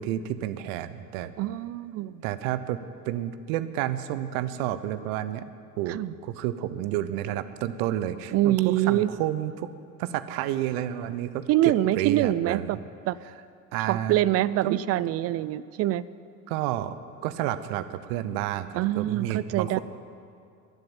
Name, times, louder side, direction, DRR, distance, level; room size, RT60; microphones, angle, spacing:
voice 1, 0.0-1.3 2.2-2.8 3.1-5.4 5.8-9.7 10.0-12.8 13.7-14.2 14.6-14.8 16.5-17.0 17.2-19.8, right 12 dB, 60° right, 13 dB, 0.9 m, -30 dB
voice 2, 1.4-2.2 5.9-6.1 8.3-9.1 11.5-12.8 13.1-13.2 13.9-16.1 18.7-19.8, right 14 dB, 35° right, 18 dB, 0.4 m, -25 dB
11.5 x 10.5 x 8.8 m, 2.4 s
hypercardioid pair, 75°, 47 cm